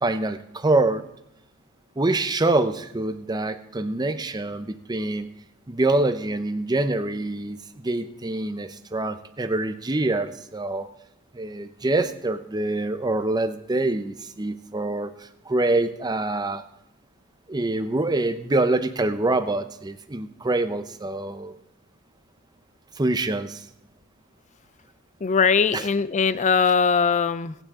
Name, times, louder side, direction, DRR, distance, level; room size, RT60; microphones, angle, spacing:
voice 1, 0.0-1.0 2.0-5.3 5.7-10.9 11.3-16.6 17.5-21.6 23.0-23.7 25.7-25.9 26.6-26.7, right 2 dB, 20° right, 10 dB, 0.6 m, -25 dB
voice 2, 25.2-27.6, left 5 dB, 35° left, 16 dB, 0.4 m, -20 dB
23.5 x 9.0 x 3.6 m, 0.81 s
head